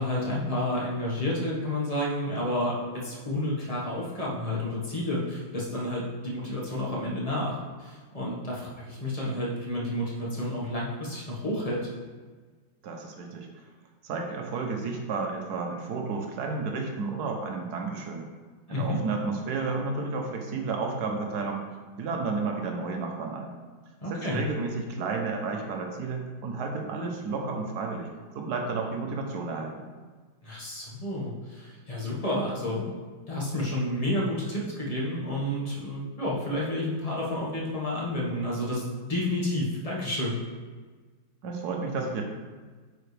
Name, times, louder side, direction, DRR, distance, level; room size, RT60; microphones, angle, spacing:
voice 1, 0.0-11.8 18.7-19.0 24.0-24.4 30.4-32.9 33.3-40.4, left 1 dB, 20° left, -5 dB, 1.3 m, -30 dB
voice 2, 12.8-13.5 14.0-18.3 18.7-21.6 22.0-23.5 24.1-28.1 28.3-29.8 41.4-42.2, right 4 dB, 60° right, 2 dB, 1.3 m, -32 dB
8.9 x 5.0 x 3.4 m, 1.4 s
omnidirectional pair, 2.2 m